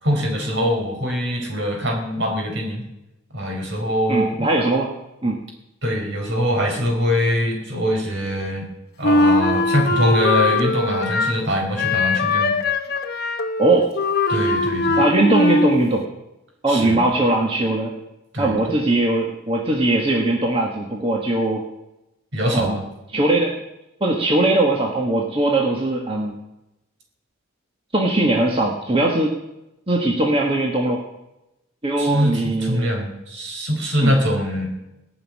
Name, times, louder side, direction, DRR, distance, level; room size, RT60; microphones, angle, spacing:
voice 1, 0.0-2.8 3.3-4.5 5.8-8.7 9.0-12.5 14.3-15.0 16.7-17.0 18.3-18.6 22.3-22.8 32.0-34.7, equal, 60° right, 1 dB, 4.7 m, -23 dB
voice 2, 4.1-4.9 5.2-5.4 13.6-13.9 15.0-16.0 16.6-17.9 18.4-21.6 22.5-22.8 23.1-23.5 24.0-26.3 27.9-29.4 29.9-31.0 31.8-32.9 34.0-34.1, right 2 dB, 25° right, -1 dB, 1.6 m, -20 dB
Wind instrument woodwind instrument, 9.0-11.5 11.8-15.8, left 2 dB, 50° left, 1.1 m, -20 dB
18.0 x 6.4 x 9.8 m, 0.91 s
head